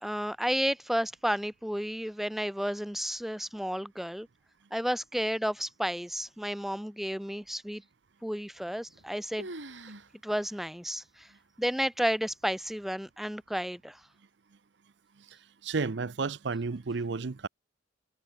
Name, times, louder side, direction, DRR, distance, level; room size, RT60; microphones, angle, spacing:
voice 1, 0.0-4.3 4.7-7.8 8.2-9.5 10.2-11.3 11.6-14.0, equal, ahead, 0.5 m, -32 dB
sound 1, 8.6-9.1 9.4-10.1 10.4-10.5 11.2-11.3 12.0-12.4, right 2 dB, 85° right, 5.0 m, -44 dB
voice 2, 15.6-17.5, right 4 dB, 65° right, 0.6 m, -32 dB
head